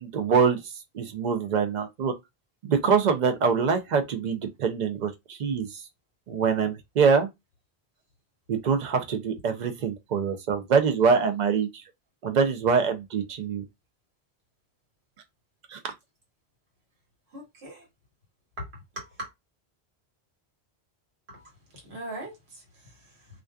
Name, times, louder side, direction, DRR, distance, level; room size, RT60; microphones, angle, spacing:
voice 1, 0.0-0.6 0.9-2.1 2.6-5.7 6.3-7.3 8.5-11.8 12.2-13.6 15.7-15.9, right 6 dB, 55° right, 0.5 m, -24 dB
voice 2, 17.3-17.9 18.6-18.7 18.9-19.3 21.3-23.3, right 1 dB, 80° right, 1.4 m, -41 dB
2.5 x 2.2 x 2.2 m
omnidirectional pair, 1.1 m